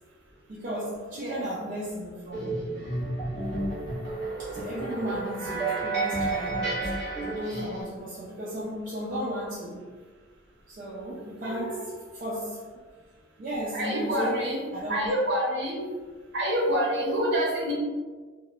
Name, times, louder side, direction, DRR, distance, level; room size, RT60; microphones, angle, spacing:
voice 1, 0.5-2.5 4.4-6.9 7.3-9.9 10.7-12.6 13.4-15.1, equal, 40° right, -6 dB, 0.3 m, -35 dB
sound 1, 2.3-7.8, right 2 dB, 5° left, 1.2 m, -31 dB
voice 2, 11.4-11.9 13.7-14.6 14.9-15.8 16.3-17.7, equal, 60° right, -4 dB, 0.7 m, -27 dB
2.8 x 2.1 x 2.3 m, 1.4 s
head